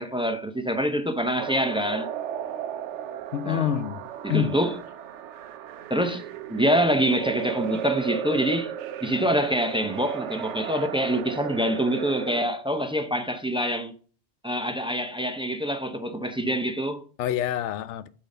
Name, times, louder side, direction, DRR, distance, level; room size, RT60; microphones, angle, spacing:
voice 1, 0.0-2.1 3.5-3.7 4.2-4.8 5.9-8.7 9.0-13.9 14.4-17.0, equal, 5° right, 0.5 m, -26 dB
sound 1, 1.4-12.4, right 9 dB, 90° right, 0.9 m, -35 dB
voice 2, 3.3-4.0 4.3-4.6 17.2-18.1, left 10 dB, 85° left, 0.9 m, -26 dB
8.7 x 3.8 x 5.4 m
omnidirectional pair, 1.2 m